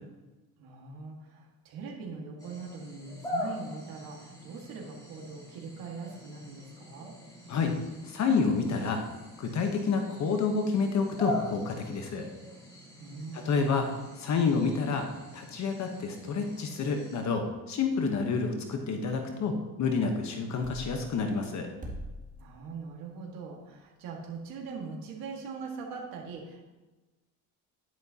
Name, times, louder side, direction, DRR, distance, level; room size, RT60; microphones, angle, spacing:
voice 1, 0.6-7.2 13.0-13.8 22.4-26.6, right 4 dB, 75° right, -1 dB, 1.9 m, -42 dB
sound 1, 2.4-17.2, left 1 dB, 10° left, 3.2 m, -42 dB
voice 2, 8.0-9.0 9.4-12.3 13.4-15.1 15.3-21.7, left 4 dB, 50° left, 4 dB, 1.1 m, -29 dB
sound 2, 20.6-20.9 21.8-22.2, right 1 dB, 20° right, 2.0 m, -39 dB
10.5 x 9.0 x 2.9 m, 1.1 s
cardioid pair, 115°, 35 cm